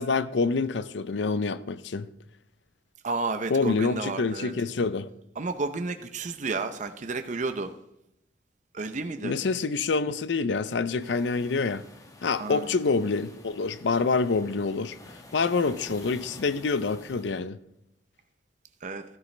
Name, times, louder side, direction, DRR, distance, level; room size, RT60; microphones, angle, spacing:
voice 1, 0.0-2.1 3.5-5.1 9.2-11.8 12.2-15.0 15.3-17.6, left 4 dB, 80° left, 0.5 m, -26 dB
voice 2, 3.0-4.5 5.4-7.7 8.7-9.4 12.4-12.7 18.8-19.0, right 3 dB, 45° right, 0.6 m, -31 dB
sound 1, 11.0-17.4, left 2 dB, 20° left, 1.2 m, -50 dB
13.0 x 11.5 x 3.3 m
head